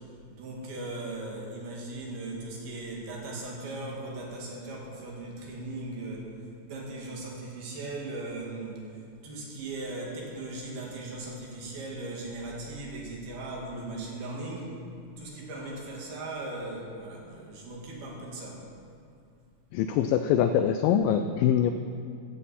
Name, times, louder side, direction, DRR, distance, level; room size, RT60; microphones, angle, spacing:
voice 1, 0.3-6.3 6.6-8.8 9.2-14.8 15.2-18.6, right 2 dB, 75° right, -2 dB, 4.0 m, -38 dB
voice 2, 19.7-21.7, left 9 dB, 85° left, 8 dB, 2.0 m, -23 dB
14.5 x 14.5 x 4.3 m, 2.3 s
omnidirectional pair, 4.5 m